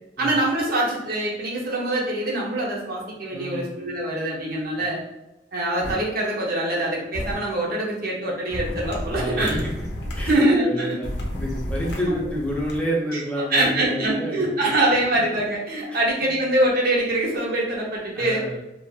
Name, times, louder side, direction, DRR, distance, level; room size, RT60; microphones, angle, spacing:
voice 1, 0.2-5.0 5.5-9.6 10.2-11.0 12.0-12.3 13.1-13.2 13.5-18.5, right 1 dB, 55° right, -3 dB, 0.7 m, -24 dB
voice 2, 3.3-3.7 9.1-9.7 10.2-11.1 11.4-14.7 15.9-16.3 18.1-18.6, equal, 5° left, -3 dB, 0.5 m, -29 dB
sound 1, 5.8-5.9 7.1-7.3 8.5-10.3 11.0-12.8, left 1 dB, 70° left, 0.6 m, -31 dB
2.5 x 2.3 x 2.3 m, 0.94 s
head